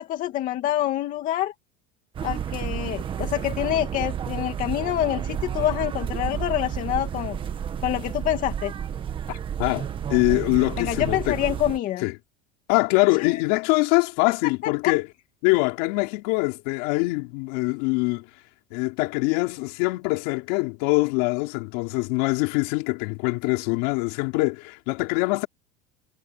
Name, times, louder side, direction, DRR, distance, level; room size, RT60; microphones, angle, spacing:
voice 1, 0.0-1.5 2.2-7.4 7.8-8.7 10.8-12.1 13.2-13.4 14.6-14.9, left 13 dB, 40° left, 2.4 m, -26 dB
sound 1, 2.1-11.8, right 9 dB, 25° right, 1.5 m, -31 dB
voice 2, 9.3-11.4 12.0-12.1 12.7-15.1 15.4-18.3 18.7-25.5, left 26 dB, 65° left, 4.5 m, -24 dB
cardioid pair, 160°, 21 cm